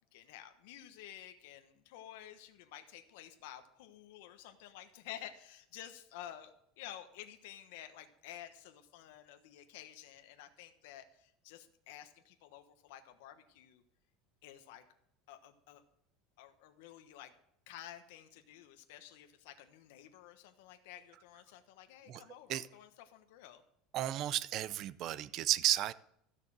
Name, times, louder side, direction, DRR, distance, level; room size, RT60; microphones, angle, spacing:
voice 1, 0.1-13.8 14.4-14.8 15.3-15.8 16.4-17.3 17.7-23.6, left 11 dB, 75° left, 1.1 m, -52 dB
voice 2, 23.9-25.9, right 13 dB, 45° right, 0.5 m, -33 dB
13.0 x 6.5 x 7.5 m
cardioid pair, 155°, 0 cm